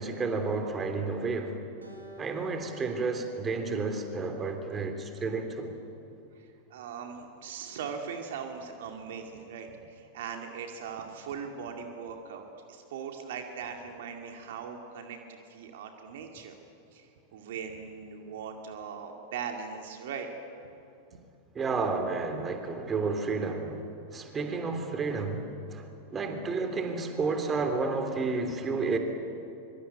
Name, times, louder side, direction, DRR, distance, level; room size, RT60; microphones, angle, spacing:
voice 1, 0.0-1.5 2.2-5.8 21.5-23.8 24.1-29.0, right 4 dB, 20° right, 6 dB, 3.2 m, -31 dB
Acoustic guitar, 1.8-5.2, left 1 dB, 75° right, 5.0 m, -50 dB
voice 2, 6.4-16.6 16.9-20.3, right 6 dB, 55° right, 3 dB, 2.3 m, -40 dB
24.0 x 24.0 x 9.5 m, 2.7 s
figure-of-eight pair, 90°, 0 cm